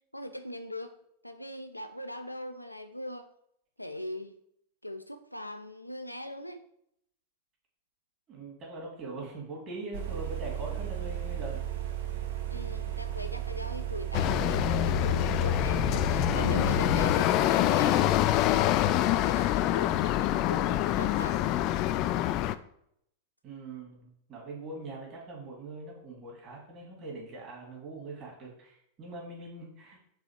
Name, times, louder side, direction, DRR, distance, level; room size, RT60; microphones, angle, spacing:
voice 1, 0.1-1.0 1.2-3.3 3.8-4.3 4.8-6.6 12.5-18.5 18.9-21.6, left 1 dB, 90° left, 9 dB, 0.5 m, -41 dB
voice 2, 8.3-11.6 23.4-30.2, right 2 dB, 30° right, -2 dB, 2.2 m, -42 dB
sound 1, 9.9-17.1, right 12 dB, 60° right, 0.8 m, -34 dB
sound 2, 14.1-22.6, left 13 dB, 40° left, 0.3 m, -26 dB
4.7 x 3.8 x 5.7 m, 0.73 s
figure-of-eight pair, 90°, 0 cm